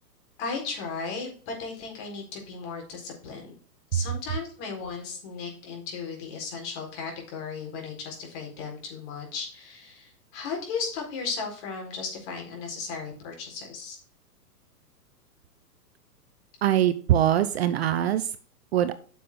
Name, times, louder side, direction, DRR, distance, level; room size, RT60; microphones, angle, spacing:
voice 1, 0.4-3.6 3.9-14.0, left 5 dB, 40° left, 1 dB, 4.3 m, -36 dB
voice 2, 16.6-18.4 18.7-18.9, right 11 dB, 40° right, 12 dB, 0.6 m, -23 dB
9.3 x 6.9 x 3.7 m, 0.43 s
hypercardioid pair, 140°, 49 cm